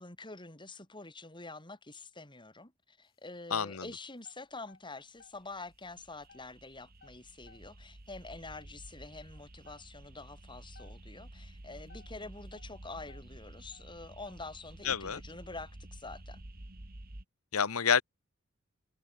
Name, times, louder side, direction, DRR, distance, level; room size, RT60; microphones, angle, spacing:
voice 1, 0.0-16.4, left 3 dB, 20° left, 5.0 m, -47 dB
sound 1, 3.1-3.8 4.2-5.4 5.8-6.5 6.9-7.9 8.2-8.3 8.5-8.8 9.3-9.4 9.6-9.9 10.2-10.3 10.7-11.1 11.9-12.8 13.0-14.5 14.8-15.1 15.5-16.3, left 4 dB, 45° left, 7.3 m, -60 dB
voice 2, 3.5-3.9 14.8-15.2 17.5-18.0, left 6 dB, 85° left, 1.2 m, -28 dB
sound 2, 5.2-17.2, right 1 dB, 45° right, 1.9 m, -51 dB
head